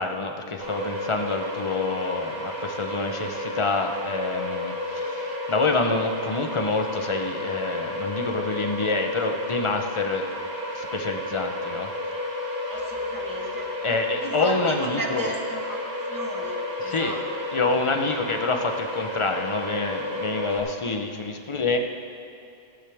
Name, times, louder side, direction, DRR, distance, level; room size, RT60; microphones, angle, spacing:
voice 1, 0.0-10.3 10.7-11.9 13.8-15.4 16.8-17.2 17.5-21.8, left 3 dB, 30° left, 4 dB, 0.8 m, -27 dB
sound 1, 0.6-20.6, left 1 dB, 70° right, 2.3 m, -32 dB
voice 2, 12.7-13.7 14.2-15.8 16.1-17.2, right 2 dB, 20° right, -1 dB, 1.5 m, -35 dB
15.5 x 13.5 x 3.5 m, 2.5 s
omnidirectional pair, 1.1 m